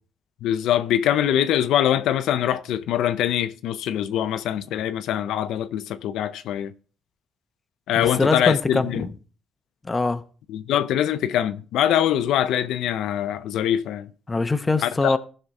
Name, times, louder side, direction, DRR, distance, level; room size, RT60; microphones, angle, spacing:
voice 1, 0.4-6.7 7.9-9.1 10.5-14.1 14.8-15.1, left 11 dB, 85° left, 0.5 m, -23 dB
voice 2, 7.9-9.1 9.9-10.2 14.3-15.2, left 3 dB, 20° left, 0.8 m, -23 dB
14.5 x 5.6 x 3.6 m
cardioid pair, 90°, 0 cm